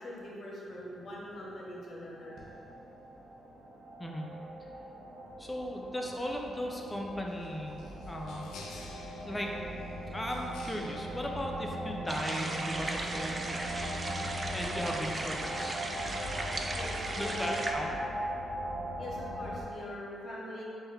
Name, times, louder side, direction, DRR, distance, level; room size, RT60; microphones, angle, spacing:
voice 1, 0.0-2.4 16.7-17.9 19.0-20.6, left 1 dB, 55° left, -4 dB, 0.9 m, -43 dB
sound 1, 0.7-19.6, right 1 dB, 70° right, 0.7 m, -40 dB
voice 2, 4.0-4.4 5.4-8.5 9.2-9.6 10.1-15.8 17.1-18.0, equal, 15° left, 0 dB, 0.5 m, -37 dB
sound 2, 7.3-12.3, left 3 dB, 75° left, 0.4 m, -53 dB
sound 3, 12.1-17.7, right 2 dB, 35° right, 0.4 m, -37 dB
4.4 x 2.3 x 3.2 m, 2.7 s
supercardioid pair, 55°, 0 cm